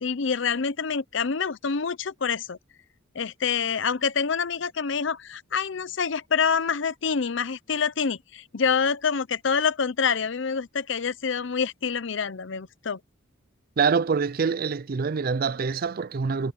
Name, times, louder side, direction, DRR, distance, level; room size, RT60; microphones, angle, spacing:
voice 1, 0.0-2.6 3.1-13.0, left 6 dB, 65° left, 0.7 m, -26 dB
voice 2, 13.8-16.5, right 5 dB, 45° right, 0.4 m, -25 dB
head